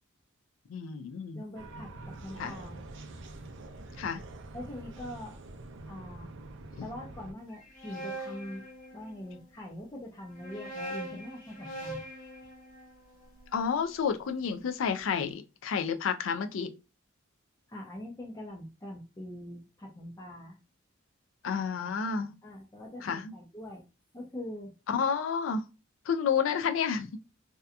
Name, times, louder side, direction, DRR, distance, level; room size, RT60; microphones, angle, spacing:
voice 1, 0.7-1.4 2.4-2.5 4.0-4.2 6.8-6.9 13.5-16.7 21.4-22.3 23.0-23.3 24.9-25.6 26.1-27.2, left 6 dB, 75° left, 0.4 m, -30 dB
voice 2, 1.3-2.8 4.5-5.4 5.8-6.4 6.8-8.6 8.9-12.0 17.7-20.6 22.4-23.8 24.1-24.7, left 1 dB, 15° left, 0.5 m, -43 dB
sound 1, 1.5-7.3, right 2 dB, 65° right, 0.4 m, -45 dB
sound 2, 7.5-9.4 10.2-14.4, right 1 dB, 45° left, 0.9 m, -43 dB
2.7 x 2.2 x 2.4 m
head